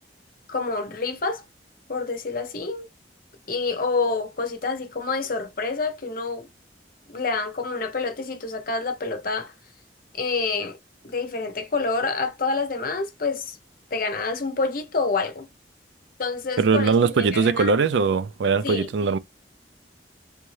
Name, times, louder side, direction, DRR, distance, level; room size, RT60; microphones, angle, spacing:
voice 1, 0.5-1.4 1.9-2.9 3.5-6.5 7.1-9.5 10.1-10.8 11.0-13.6 13.9-15.5 16.2-17.8 18.6-18.9, left 4 dB, 50° left, 0.8 m, -27 dB
voice 2, 16.6-19.2, right 5 dB, 85° right, 0.4 m, -21 dB
3.4 x 2.6 x 3.1 m
head